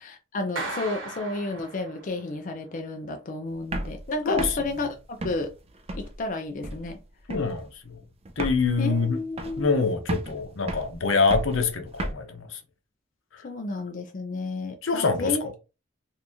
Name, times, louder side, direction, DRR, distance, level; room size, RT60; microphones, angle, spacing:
voice 1, 0.3-5.5 5.9-7.0 8.8-9.8 13.4-15.4, left 2 dB, 40° left, 0.4 m, -32 dB
Clapping, 0.6-2.3, right 3 dB, 80° right, 1.0 m, -36 dB
sound 1, 3.6-6.3 6.6-7.0 7.3-7.7 7.9-8.0 8.2-9.8 10.1-12.1, right 1 dB, 30° right, 0.4 m, -34 dB
voice 2, 4.3-4.6 7.3-8.0 8.4-9.2 9.6-12.6 13.3-13.4 14.8-15.5, left 4 dB, 85° left, 0.8 m, -25 dB
2.8 x 2.6 x 3.5 m
head